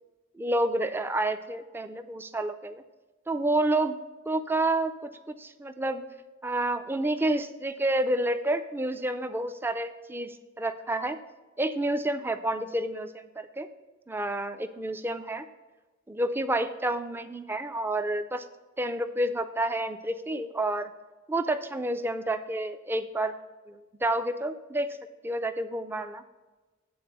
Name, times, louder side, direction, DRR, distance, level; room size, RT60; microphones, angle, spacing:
voice 1, 0.3-2.8 3.3-4.0 4.3-6.0 6.4-11.2 11.6-13.7 14.1-15.5 16.1-18.4 18.8-20.9 21.3-23.3 23.7-24.9 25.2-26.2, right 1 dB, 10° right, 10 dB, 0.4 m, -29 dB
8.6 x 4.1 x 6.4 m, 1.2 s
head